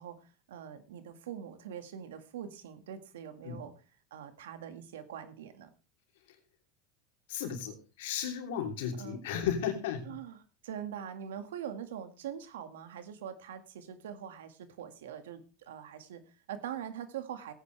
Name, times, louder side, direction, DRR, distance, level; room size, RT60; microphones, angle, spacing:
voice 1, 0.0-3.7 4.1-5.7 9.0-9.2 10.1-17.5, right 9 dB, 90° right, 9 dB, 1.9 m, -43 dB
voice 2, 7.3-10.1, left 8 dB, 80° left, 4 dB, 3.1 m, -34 dB
17.0 x 9.7 x 3.3 m, 0.31 s
supercardioid pair, 105°, 0 cm